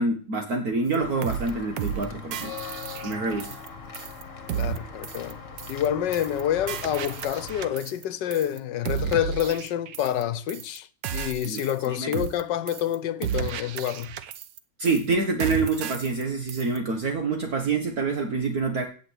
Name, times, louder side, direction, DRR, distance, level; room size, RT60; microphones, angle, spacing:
voice 1, 0.0-2.5 3.0-3.6 11.4-11.6 11.9-12.1 14.8-18.8, right 3 dB, 55° right, 2.0 m, -26 dB
sound 1, 0.9-1.0 1.2-1.5 1.8-2.0 2.3-3.7 3.9-4.2 4.5-4.8 5.0-5.3 5.6-5.9 6.1-6.4 6.7-8.0 8.3-8.6 8.9-10.2 10.5-10.8 11.0-11.9 12.1-12.4 12.7-13.0 13.2-14.6 14.9-15.1 15.4-16.2 16.5-16.8, right 9 dB, 85° right, 1.6 m, -33 dB
Walk footsteps / Bell, 1.0-7.7, left 5 dB, 45° left, 2.0 m, -40 dB
voice 2, 4.5-5.4 5.7-14.1, left 10 dB, 80° left, 1.5 m, -28 dB
17.0 x 6.2 x 8.1 m
omnidirectional pair, 1.9 m